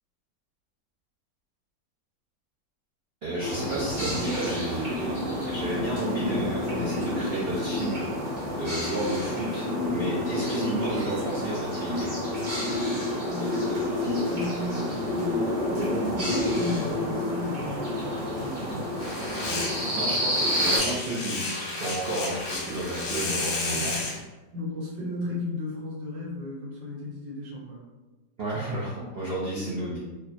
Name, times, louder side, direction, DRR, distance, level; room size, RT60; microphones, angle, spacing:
voice 1, 3.2-8.1 8.6-12.1 20.0-23.9 28.4-30.0, right 1 dB, 85° right, -6 dB, 0.5 m, -32 dB
sound 1, 3.4-20.8, left 1 dB, 35° right, 0.9 m, -29 dB
voice 2, 13.2-18.9 24.5-27.9, left 1 dB, 70° right, -4 dB, 1.6 m, -35 dB
sound 2, 19.0-24.2, left 2 dB, 65° left, 1.3 m, -32 dB
3.4 x 2.2 x 4.0 m, 1.2 s
omnidirectional pair, 2.0 m